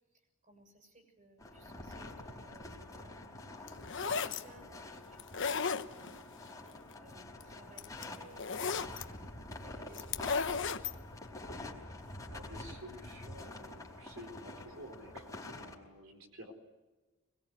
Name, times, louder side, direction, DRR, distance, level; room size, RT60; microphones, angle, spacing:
voice 1, 0.1-6.3 7.0-9.3 9.6-11.0, right 2 dB, 40° right, 5 dB, 6.9 m, -60 dB
sound 1, 1.4-15.8, left 2 dB, 15° left, 4.2 m, -47 dB
sound 2, 3.7-4.4 5.2-6.2 7.4-7.5 7.8-9.0 9.9-10.9, left 5 dB, 60° left, 1.1 m, -34 dB
voice 2, 12.3-16.5, equal, 75° right, 5 dB, 4.4 m, -51 dB
24.0 x 22.0 x 9.6 m, 1.2 s
head